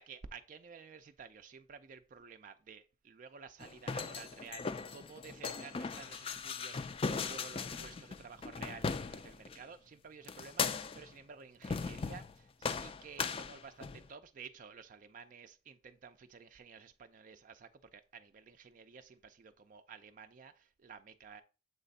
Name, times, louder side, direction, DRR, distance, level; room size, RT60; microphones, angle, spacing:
voice 1, 0.0-21.4, right 5 dB, 50° right, 0.4 m, -52 dB
sound 1, 3.6-9.6 10.3-11.1 11.6-12.3 12.6-14.1, left 5 dB, 35° left, 0.3 m, -38 dB
7.3 x 3.3 x 4.0 m
head